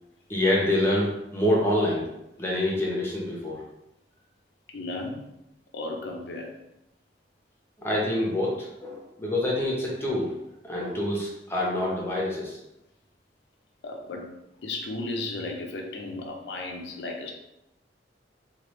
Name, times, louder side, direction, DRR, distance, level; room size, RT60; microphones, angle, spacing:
voice 1, 0.3-2.0 2.4-3.6 7.8-10.3 10.6-12.6, left 1 dB, 15° left, -4 dB, 0.7 m, -26 dB
voice 2, 4.7-5.2 5.7-6.5 13.8-14.3 14.6-17.3, left 2 dB, 70° left, 1 dB, 0.5 m, -34 dB
3.2 x 2.4 x 3.0 m, 0.86 s
head